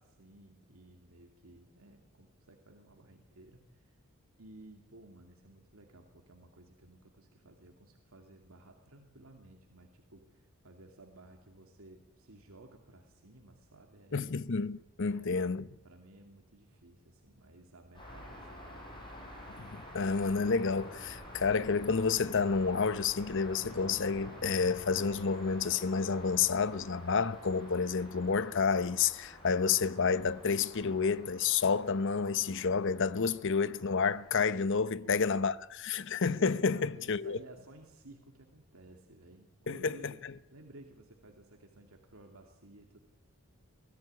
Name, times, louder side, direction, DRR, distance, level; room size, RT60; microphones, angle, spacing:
voice 1, 0.0-4.0 4.4-14.3 15.1-19.1 35.0-35.5 36.7-40.2 40.5-43.0, right 2 dB, 75° right, 2.6 m, -56 dB
voice 2, 14.1-15.7 19.6-37.4 39.7-40.3, left 5 dB, 60° left, 0.8 m, -30 dB
sound 1, 17.9-34.4, equal, 25° left, 6.3 m, -49 dB
23.5 x 16.0 x 9.7 m
head